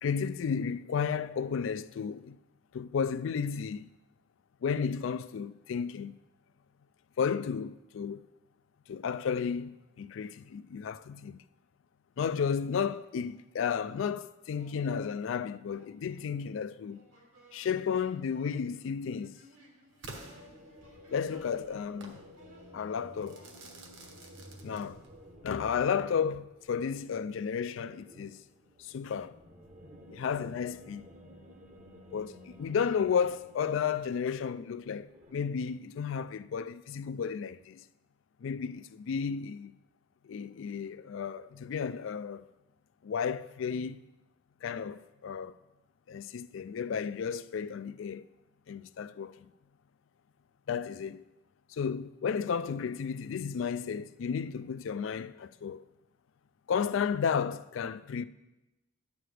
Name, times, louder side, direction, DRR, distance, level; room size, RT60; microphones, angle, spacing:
voice 1, 0.0-2.4 2.7-3.9 4.6-6.1 7.2-8.2 8.9-11.4 12.2-17.0 17.5-19.4 21.1-22.2 22.7-23.4 24.6-25.0 25.4-28.4 28.8-29.4 30.1-31.1 32.1-37.8 38.4-39.7 40.2-42.5 43.0-44.0 44.6-45.6 46.1-48.3 48.7-49.5 50.7-51.2 51.7-55.8 56.7-58.2, left 6 dB, 70° left, 0.3 m, -33 dB
sound 1, 12.1-12.2 12.5-13.8 14.5-23.6, equal, 85° right, 2.5 m, -61 dB
Crackle / Fireworks, 20.0-21.2 22.0-22.2 23.2-25.2, right 2 dB, 65° right, 1.3 m, -49 dB
sound 2, 20.4-34.3 34.6-35.3, equal, 35° right, 0.8 m, -54 dB
10.0 x 9.2 x 3.3 m
head